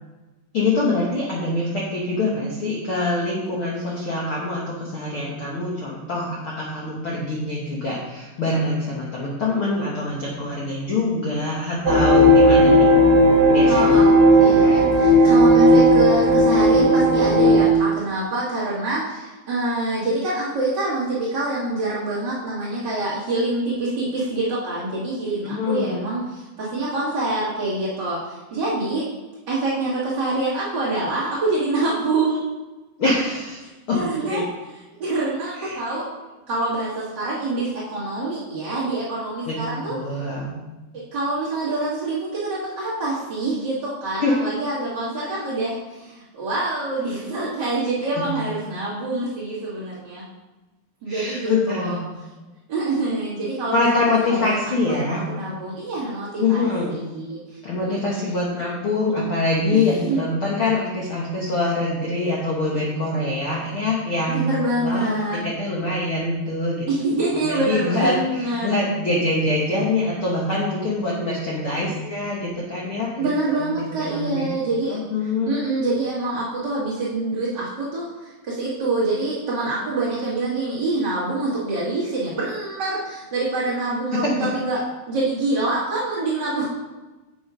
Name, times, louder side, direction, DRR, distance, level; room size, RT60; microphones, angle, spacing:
voice 1, 0.5-12.9 13.5-14.0 25.4-26.0 33.0-33.6 33.9-34.4 35.5-35.8 39.4-39.6 39.9-40.5 44.2-44.3 48.1-48.3 51.1-52.0 53.7-55.2 56.4-56.9 57.6-64.5 64.8-66.9 67.4-73.7 74.0-74.5 74.9-75.6 84.1-84.3, left 2 dB, 80° left, -5 dB, 1.2 m, -24 dB
sound 1, 11.9-17.7, equal, 55° right, 2.0 m, -14 dB
voice 2, 13.7-14.1 14.4-29.1 29.5-32.5 33.9-34.4 35.0-36.1 36.5-40.2 40.9-50.2 51.0-52.0 52.7-54.6 54.9-58.6 59.7-60.2 64.3-65.4 66.9-68.7 73.2-75.0 75.5-86.7, right 2 dB, 35° right, -10 dB, 2.1 m, -26 dB
7.1 x 6.8 x 5.1 m, 1.1 s
omnidirectional pair, 4.6 m